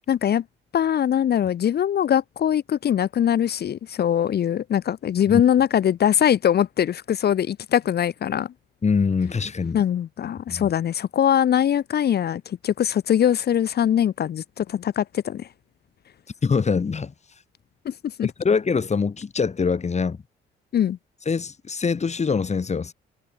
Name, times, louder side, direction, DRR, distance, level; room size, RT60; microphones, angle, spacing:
voice 1, 0.1-0.4 0.7-8.5 9.7-15.5 17.8-17.9 18.2-18.3 20.7-21.0, left 9 dB, 55° left, 0.9 m, -22 dB
voice 2, 8.8-9.8 10.5-10.7 16.4-17.1 18.2-20.2 21.3-22.9, left 5 dB, 35° left, 2.6 m, -24 dB
cardioid pair, 90°, 20 cm